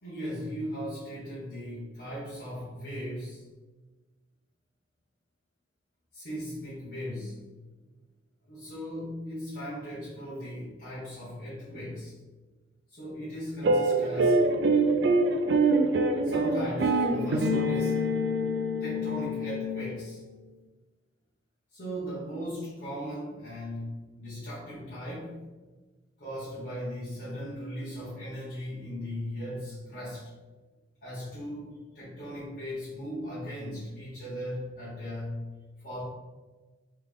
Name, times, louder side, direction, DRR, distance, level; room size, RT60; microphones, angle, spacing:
voice 1, 0.0-3.6 6.1-7.4 8.5-12.1 12.9-14.7 16.0-18.0 18.8-20.2 21.7-25.5 26.2-30.3 31.0-35.4 35.8-36.0, equal, 60° left, -11 dB, 1.3 m, -38 dB
sound 1, 13.6-20.2, right 2 dB, 65° right, 0.4 m, -25 dB
3.6 x 3.3 x 3.6 m, 1.3 s
head